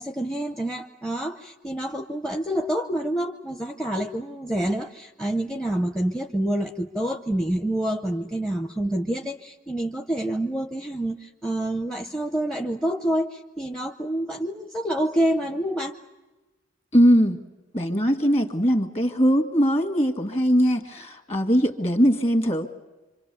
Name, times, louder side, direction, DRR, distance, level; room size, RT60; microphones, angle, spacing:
voice 1, 0.0-16.0, right 1 dB, 5° left, 6 dB, 0.7 m, -27 dB
voice 2, 16.9-17.4 17.7-22.7, equal, 30° left, 9 dB, 2.1 m, -21 dB
26.0 x 26.0 x 7.0 m, 1.2 s
head